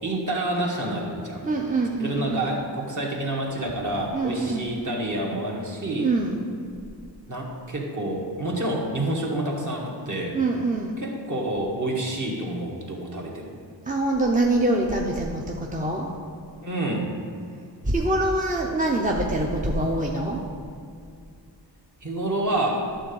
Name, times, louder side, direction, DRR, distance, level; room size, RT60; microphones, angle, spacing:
voice 1, 0.0-1.5 2.0-6.1 7.3-10.4 11.0-13.5 16.6-17.1 22.0-22.9, right 1 dB, 45° right, -2 dB, 1.6 m, -28 dB
voice 2, 1.4-2.5 4.1-4.7 5.9-6.4 10.3-10.9 13.9-16.1 17.8-20.4, right 2 dB, 20° right, 0 dB, 0.6 m, -24 dB
11.0 x 3.9 x 7.0 m, 2.3 s
wide cardioid pair, 110°, 43 cm